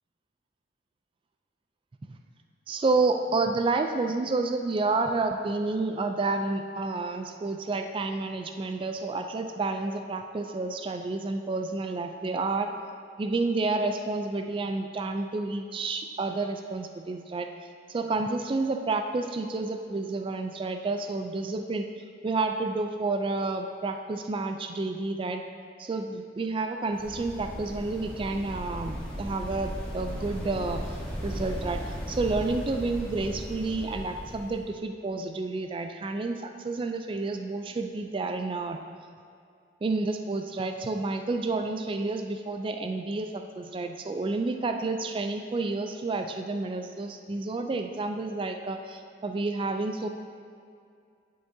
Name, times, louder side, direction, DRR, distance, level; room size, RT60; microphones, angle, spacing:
voice 1, 2.7-12.7 13.2-17.5 17.9-21.9 22.2-25.4 25.8-38.8 39.8-50.1, right 3 dB, 30° right, 5 dB, 0.3 m, -30 dB
sound 1, 26.9-34.7, equal, 5° left, 1.1 m, -37 dB
10.5 x 5.9 x 2.7 m, 2.4 s
head